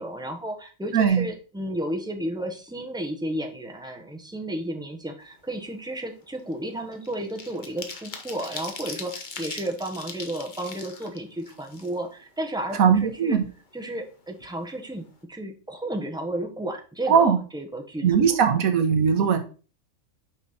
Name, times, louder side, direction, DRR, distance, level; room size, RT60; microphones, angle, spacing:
voice 1, 0.0-13.4 13.7-18.1, right 1 dB, 5° right, 3 dB, 0.8 m, -33 dB
voice 2, 0.9-1.2 12.7-13.4 17.1-17.4 18.0-19.4, right 7 dB, 80° right, 7 dB, 1.4 m, -19 dB
sound 1, 5.3-5.6 5.9-12.3 12.7-12.8 13.1-14.1 14.4-14.5 14.8-15.1, left 4 dB, 40° left, 1.0 m, -40 dB
6.0 x 5.3 x 4.0 m, 0.36 s
omnidirectional pair, 1.5 m